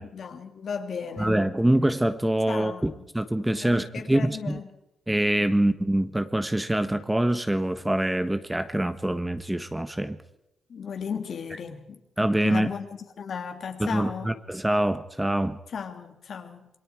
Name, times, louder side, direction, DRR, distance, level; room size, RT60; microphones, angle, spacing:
voice 1, 0.1-1.4 2.5-3.1 3.6-4.7 5.5-5.6 10.7-12.0 12.4-14.4 15.7-16.7, left 6 dB, 60° left, 6 dB, 3.0 m, -35 dB
voice 2, 1.2-4.6 5.1-10.2 12.2-12.7 13.9-15.6, right 1 dB, 10° right, 10 dB, 1.4 m, -25 dB
27.5 x 23.0 x 4.7 m, 0.87 s
cardioid pair, 100°, 0 cm